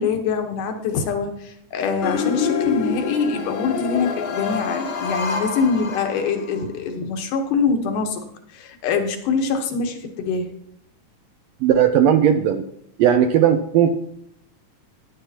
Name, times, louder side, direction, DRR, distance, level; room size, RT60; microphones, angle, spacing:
voice 1, 0.0-8.2 8.5-10.5, left 5 dB, 85° left, 5 dB, 2.7 m, -24 dB
sound 1, 2.0-6.6, left 6 dB, 70° left, 1.1 m, -26 dB
voice 2, 11.6-12.6 13.0-13.9, right 9 dB, 80° right, 7 dB, 1.5 m, -16 dB
13.0 x 10.0 x 2.8 m, 0.69 s
omnidirectional pair, 3.6 m